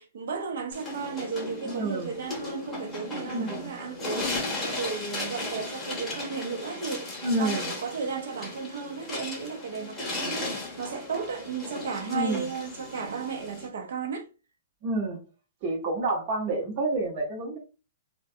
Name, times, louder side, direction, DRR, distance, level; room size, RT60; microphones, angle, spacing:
voice 1, 0.0-14.3, right 5 dB, 70° right, 0.7 m, -34 dB
sound 1, 0.7-13.7, left 2 dB, 10° left, 0.9 m, -36 dB
voice 2, 1.6-2.1 3.2-3.7 7.2-7.7 12.1-12.5 14.8-15.2 15.6-17.6, right 2 dB, 40° right, 0.9 m, -29 dB
2.4 x 2.2 x 2.6 m
hypercardioid pair, 150°, 0 cm